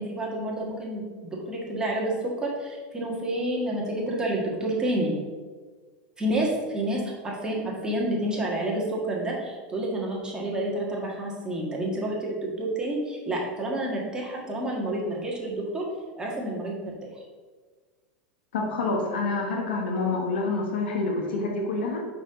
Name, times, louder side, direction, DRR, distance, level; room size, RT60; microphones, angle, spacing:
voice 1, 0.0-5.1 6.2-15.9 16.2-16.9, right 1 dB, 15° right, -3 dB, 1.7 m, -29 dB
voice 2, 18.5-22.0, left 3 dB, 85° left, 1 dB, 1.1 m, -27 dB
4.9 x 4.3 x 5.1 m, 1.4 s
hypercardioid pair, 115°, 6 cm